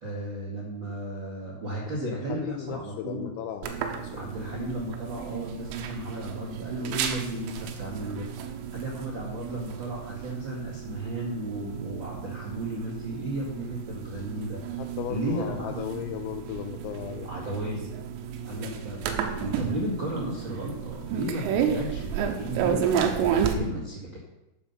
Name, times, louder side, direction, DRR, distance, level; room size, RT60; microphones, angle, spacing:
voice 1, 0.0-3.3 4.1-8.3 8.7-14.6 15.1-15.9 17.2-17.9 18.4-24.2, right 1 dB, 55° right, -4 dB, 1.3 m, -34 dB
voice 2, 2.0-4.3 14.8-17.3, left 10 dB, 85° left, 6 dB, 2.7 m, -36 dB
sound 1, 3.6-23.5, right 8 dB, 90° right, 3.6 m, -32 dB
12.0 x 7.3 x 5.6 m, 0.92 s
omnidirectional pair, 5.9 m